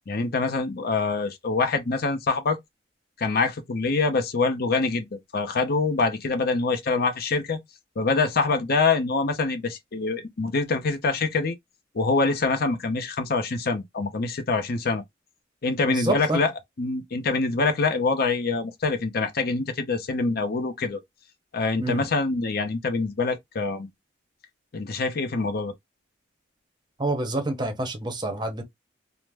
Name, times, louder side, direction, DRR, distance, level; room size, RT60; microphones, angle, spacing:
voice 1, 0.1-2.6 3.2-7.6 8.0-11.6 11.9-15.0 15.6-16.5 16.8-21.0 21.5-23.9 24.7-25.7, left 3 dB, 55° left, 0.6 m, -25 dB
voice 2, 15.9-16.4 21.8-22.1 27.0-28.6, right 2 dB, 25° right, 0.7 m, -27 dB
2.5 x 2.0 x 3.3 m
head